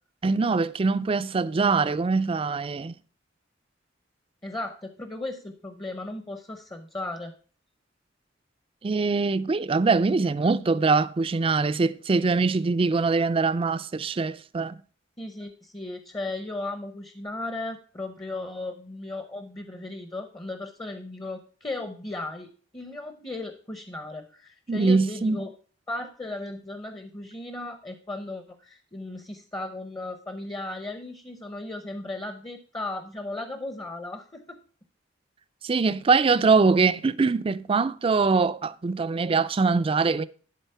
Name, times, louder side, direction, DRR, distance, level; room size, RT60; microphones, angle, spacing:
voice 1, 0.2-3.0 8.8-14.7 24.7-25.4 35.6-40.2, right 4 dB, 30° right, 0.4 m, -23 dB
voice 2, 4.4-7.3 15.2-25.5 25.9-34.6, left 2 dB, 20° left, 0.7 m, -36 dB
11.5 x 4.0 x 5.5 m
head